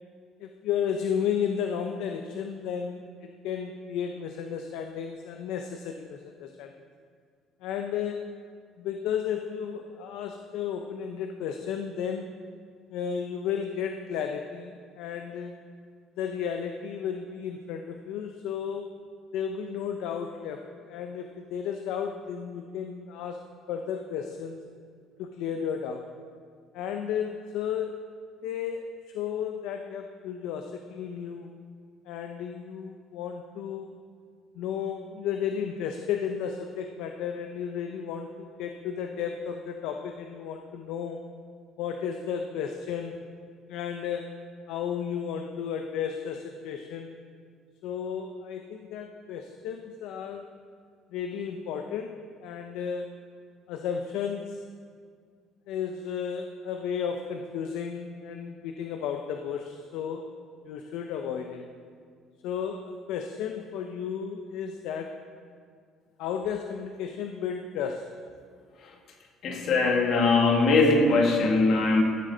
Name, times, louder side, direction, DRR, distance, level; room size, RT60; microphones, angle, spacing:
voice 1, 0.4-6.8 7.6-8.3 8.8-12.3 12.9-15.5 16.2-18.9 19.3-24.6 25.2-26.1 26.7-28.0 28.4-31.5 32.1-33.9 34.5-41.3 41.8-43.2 43.7-44.3 44.7-47.1 47.8-50.5 51.1-53.1 53.7-54.6 55.7-60.3 60.6-61.7 62.4-65.2 66.2-68.1, left 7 dB, 80° left, 5 dB, 0.6 m, -33 dB
voice 2, 69.4-72.0, left 3 dB, 55° left, 2 dB, 1.5 m, -21 dB
14.5 x 7.6 x 3.9 m, 2.1 s
cardioid pair, 140°, 0 cm